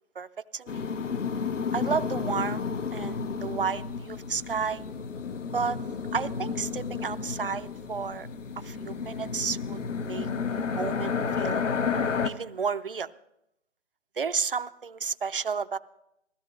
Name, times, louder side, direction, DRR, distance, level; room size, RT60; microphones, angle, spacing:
voice 1, 0.5-0.9 1.7-2.6 2.9-4.8 5.5-5.8 6.1-8.3 8.6-9.8 10.0-10.3 10.8-11.6 12.2-13.1 14.2-15.8, right 6 dB, 50° right, 13 dB, 0.5 m, -31 dB
sound 1, 0.7-12.3, left 5 dB, 85° left, 1.0 m, -31 dB
20.0 x 15.0 x 3.2 m, 0.82 s
hypercardioid pair, 180°, 36 cm